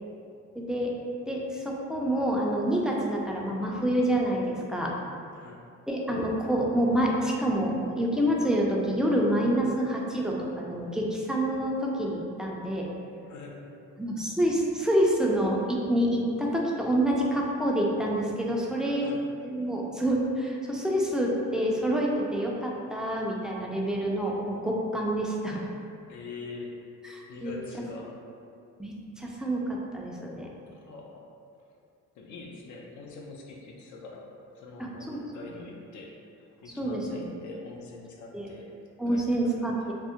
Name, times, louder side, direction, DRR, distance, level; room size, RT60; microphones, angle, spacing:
voice 1, 0.6-0.9 1.3-4.9 5.9-12.9 14.0-19.1 19.4-25.6 27.0-27.5 28.8-30.5 34.8-35.2 36.8-37.2 38.3-38.5 39.0-39.9, right 1 dB, ahead, -3 dB, 0.4 m, -27 dB
voice 2, 5.3-5.7 13.3-13.6 18.9-19.2 26.1-26.8 27.3-28.1 30.7-31.3 32.2-36.2 36.6-38.7 39.1-39.6, left 3 dB, 70° left, 0 dB, 0.6 m, -44 dB
3.4 x 2.0 x 2.8 m, 2.5 s
cardioid pair, 90°, 30 cm